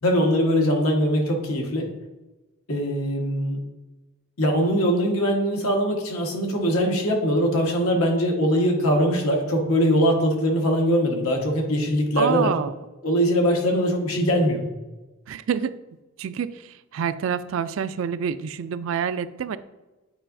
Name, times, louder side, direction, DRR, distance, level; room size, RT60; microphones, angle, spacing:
voice 1, 0.0-1.9 2.7-3.6 4.4-12.5 13.0-14.6, equal, 90° left, 0 dB, 1.4 m, -22 dB
voice 2, 12.2-12.7 15.3-15.7 16.2-16.5 16.9-19.6, right 7 dB, 65° right, 14 dB, 0.3 m, -27 dB
8.9 x 4.7 x 2.6 m, 1.1 s
head